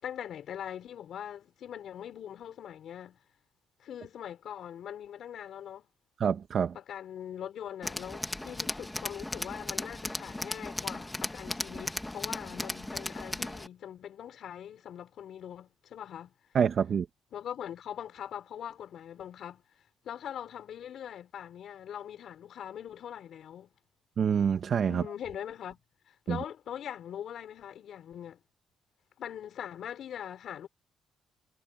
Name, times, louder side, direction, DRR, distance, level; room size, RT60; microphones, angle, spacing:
voice 1, 0.0-3.2 3.8-5.8 6.7-16.3 17.3-19.6 20.0-23.7 24.9-25.8 26.1-28.4 29.2-30.7, left 9 dB, 70° left, 5.3 m, -42 dB
voice 2, 6.2-6.7 16.5-17.1 24.2-25.0 26.3-26.4, right 7 dB, 55° right, 1.2 m, -26 dB
Tools, 7.8-13.7, left 1 dB, 10° left, 1.6 m, -36 dB
cardioid pair, 90°, 0 cm